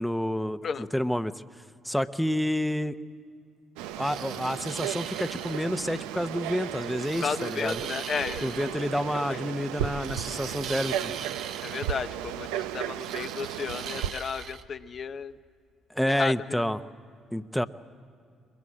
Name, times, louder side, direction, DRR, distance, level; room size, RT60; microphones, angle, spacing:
voice 1, 0.0-1.3 1.8-3.0 4.0-7.8 8.4-11.1 15.9-16.8 17.3-17.7, equal, ahead, 12 dB, 0.8 m, -29 dB
Frog, 3.8-14.1, right 11 dB, 90° right, 0.5 m, -35 dB
sound 1, 4.0-5.7 7.0-8.8 10.0-12.0 13.0-14.6, right 8 dB, 70° right, 0.9 m, -40 dB
voice 2, 7.2-9.4 11.6-15.4 16.1-16.6, left 6 dB, 50° left, 10 dB, 0.7 m, -34 dB
22.0 x 22.0 x 8.6 m, 2.2 s
supercardioid pair, 65°, 0 cm